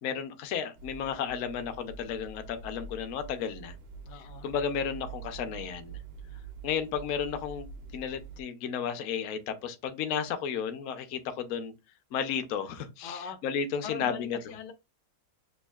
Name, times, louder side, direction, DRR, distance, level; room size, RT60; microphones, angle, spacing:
voice 1, 0.0-3.7 4.4-6.0 6.6-7.7 7.9-11.7 12.1-14.4, left 7 dB, 65° left, 0.9 m, -33 dB
sound 1, 0.7-8.4, right 5 dB, 75° right, 0.5 m, -46 dB
voice 2, 4.1-4.5 6.2-6.4 13.0-13.4 13.8-14.7, left 7 dB, 85° left, 1.2 m, -42 dB
6.2 x 2.4 x 2.3 m
omnidirectional pair, 1.8 m